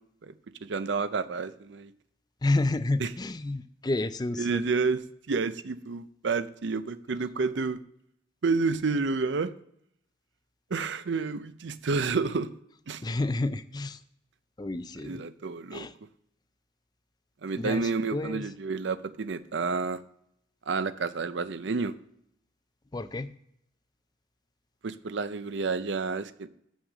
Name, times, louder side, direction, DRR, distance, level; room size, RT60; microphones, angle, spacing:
voice 1, 0.6-1.9 3.0-3.1 4.4-5.0 5.3-7.8 8.4-9.5 10.7-12.5 12.9-13.0 15.0-15.9 17.4-20.0 20.7-21.9 24.8-26.5, right 4 dB, 60° right, 14 dB, 0.5 m, -29 dB
voice 2, 2.4-4.6 13.0-14.0 14.6-15.2 15.7-15.9 17.6-18.5 22.9-23.3, left 2 dB, 20° left, 12 dB, 0.4 m, -30 dB
6.4 x 6.2 x 7.3 m, 0.73 s
head